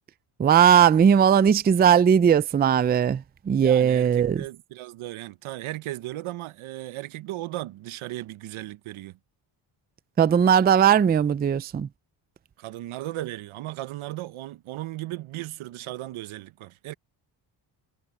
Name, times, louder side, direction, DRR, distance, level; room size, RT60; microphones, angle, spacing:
voice 1, 0.4-4.4 10.2-11.9, right 8 dB, 25° right, 0.3 m, -19 dB
voice 2, 3.5-9.2 12.6-16.9, right 16 dB, 85° right, 0.8 m, -36 dB
cardioid pair, 135°, 47 cm